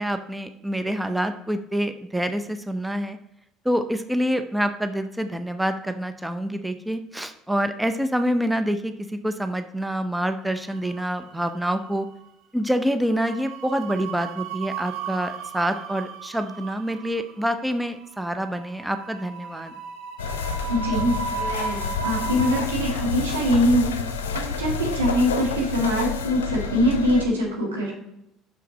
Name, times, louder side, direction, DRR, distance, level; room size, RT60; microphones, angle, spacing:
voice 1, 0.0-3.2 3.6-12.1 12.5-19.7, equal, 10° right, 9 dB, 0.6 m, -26 dB
sound 1, 10.6-11.4 11.7-11.9 13.1-22.7, right 6 dB, 65° right, 1.0 m, -35 dB
sound 2, 20.2-27.3, left 4 dB, 80° left, 0.6 m, -29 dB
voice 2, 20.7-23.9 24.3-27.9, equal, 85° right, -3 dB, 2.1 m, -23 dB
5.9 x 5.9 x 4.2 m, 0.83 s
hypercardioid pair, 60°, 0 cm